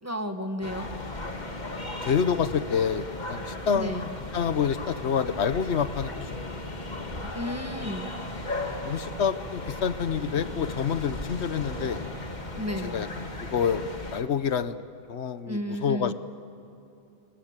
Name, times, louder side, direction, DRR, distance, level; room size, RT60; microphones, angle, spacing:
voice 1, 0.0-0.9 3.7-4.1 7.2-8.1 12.6-13.0 15.5-16.1, equal, 15° right, 6 dB, 1.5 m, -33 dB
sound 1, 0.6-14.2, left 2 dB, 45° left, 2.1 m, -36 dB
voice 2, 2.0-6.3 8.7-12.0 12.8-13.1 13.4-13.8 14.1-14.8 15.1-16.1, left 7 dB, 85° left, 13 dB, 1.2 m, -27 dB
29.0 x 23.0 x 8.9 m, 2.7 s
omnidirectional pair, 1.1 m